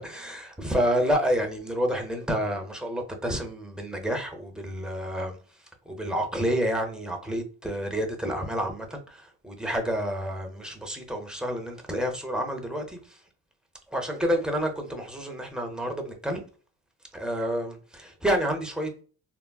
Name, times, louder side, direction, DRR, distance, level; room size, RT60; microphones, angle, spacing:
voice 1, 0.0-5.4 5.9-13.2 13.9-16.4 17.1-19.0, equal, ahead, 0.6 m, -29 dB
3.7 x 2.0 x 2.2 m
cardioid pair, 105°, 39 cm